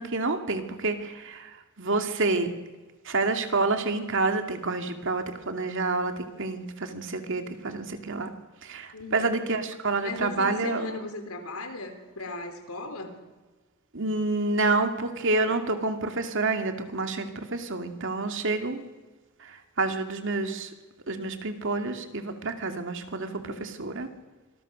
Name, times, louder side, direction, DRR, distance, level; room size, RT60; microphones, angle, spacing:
voice 1, 0.0-1.5 1.8-2.5 3.1-8.3 8.6-10.9 13.9-18.8 19.5-20.7 21.1-24.1, right 3 dB, 60° right, 6 dB, 2.4 m, -28 dB
voice 2, 8.9-9.4 10.0-13.1 23.4-23.7, left 2 dB, 85° left, 7 dB, 3.7 m, -37 dB
25.5 x 20.5 x 6.4 m, 1.3 s
head